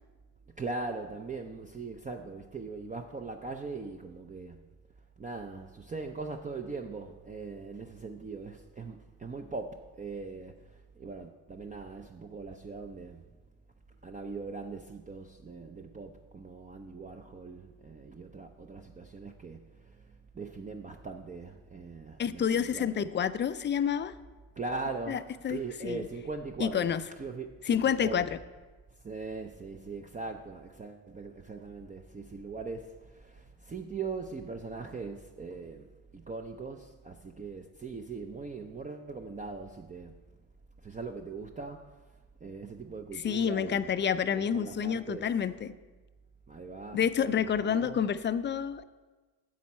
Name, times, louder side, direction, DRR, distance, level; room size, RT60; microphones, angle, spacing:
voice 1, 0.6-4.6 5.2-10.5 11.0-13.2 14.0-20.0 20.3-23.1 24.6-28.3 29.0-40.2 40.8-41.8 42.4-45.3 46.5-48.0, right 4 dB, 20° right, 4 dB, 0.5 m, -40 dB
voice 2, 22.2-24.1 25.1-26.0 26.6-27.0 27.7-28.3 43.1-45.7 46.9-48.8, left 8 dB, 30° left, 13 dB, 0.4 m, -29 dB
10.0 x 7.3 x 4.3 m, 1.3 s
cardioid pair, 85°, 38 cm